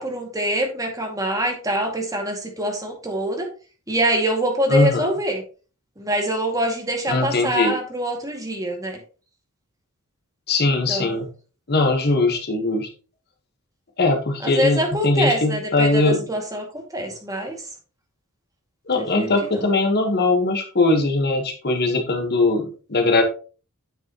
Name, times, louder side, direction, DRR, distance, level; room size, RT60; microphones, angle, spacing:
voice 1, 0.0-3.5 3.9-5.4 6.0-9.0 10.9-11.2 14.4-16.7 16.9-17.6 18.9-19.7, right 1 dB, 15° right, 1 dB, 2.2 m, -25 dB
voice 2, 4.7-5.1 7.1-7.8 10.5-11.3 11.7-12.9 14.0-16.2 18.9-23.2, left 2 dB, 50° left, 4 dB, 1.4 m, -20 dB
9.3 x 7.3 x 3.0 m, 0.36 s
head